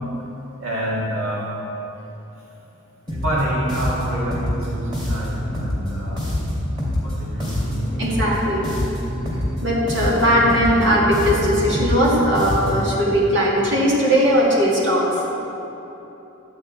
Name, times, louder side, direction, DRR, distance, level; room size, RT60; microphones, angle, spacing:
voice 1, 0.6-1.5 3.2-6.2 7.0-8.0, equal, 85° right, -6 dB, 1.8 m, -27 dB
sound 1, 3.1-13.0, equal, 25° right, 2.4 m, -26 dB
voice 2, 8.0-8.7 9.6-15.2, equal, 60° right, -5 dB, 2.2 m, -18 dB
11.5 x 8.6 x 4.4 m, 3.0 s
head